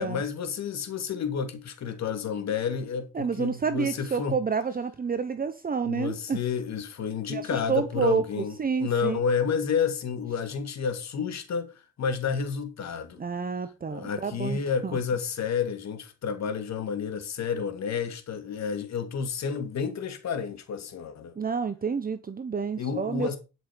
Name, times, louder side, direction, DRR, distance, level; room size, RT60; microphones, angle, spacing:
voice 1, 0.0-4.4 5.8-13.2 13.9-21.3 22.8-23.4, left 6 dB, 60° left, 2.7 m, -30 dB
voice 2, 3.1-6.4 7.3-8.2 8.6-9.2 13.2-15.0 21.4-23.4, right 5 dB, 30° right, 1.0 m, -29 dB
12.0 x 6.1 x 5.2 m
cardioid pair, 90°, 30 cm